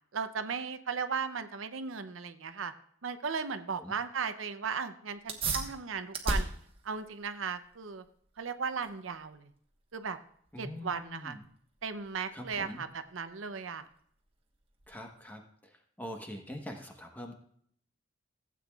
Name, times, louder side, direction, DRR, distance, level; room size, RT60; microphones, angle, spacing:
voice 1, 0.1-2.7 3.0-6.5 6.8-8.0 8.4-9.5 9.9-10.2 10.6-11.4 11.8-13.9, right 5 dB, 85° right, 10 dB, 0.7 m, -36 dB
sound 1, 5.2-15.2, right 3 dB, 30° right, 1.2 m, -40 dB
voice 2, 10.5-11.4 12.3-12.8 14.9-15.7 16.0-17.3, left 1 dB, 10° left, 2 dB, 1.1 m, -43 dB
16.0 x 8.4 x 2.4 m, 0.63 s
head